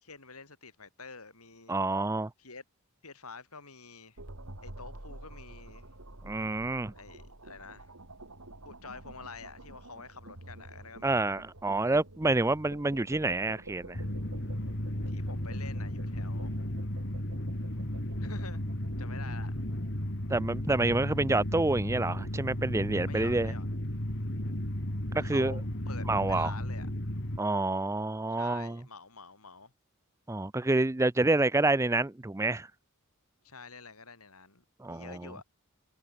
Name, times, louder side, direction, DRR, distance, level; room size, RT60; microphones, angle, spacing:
voice 1, 0.0-1.7 2.4-2.6 3.0-4.2 4.6-5.9 6.9-7.9 8.6-11.2 15.1-16.5 18.2-18.6 19.0-19.5 23.0-23.7 25.2-26.9 28.4-29.7 33.4-35.4, left 4 dB, 90° left, 7.7 m, -48 dB
voice 2, 1.7-2.3 6.2-6.9 11.0-14.0 20.3-23.5 25.1-25.6 26.1-26.5 27.4-28.8 30.3-32.7 34.8-35.2, right 2 dB, 15° right, 0.5 m, -28 dB
sound 1, 4.2-21.4, right 2 dB, 75° right, 3.3 m, -50 dB
sound 2, 13.9-27.4, left 1 dB, 55° left, 3.7 m, -34 dB
head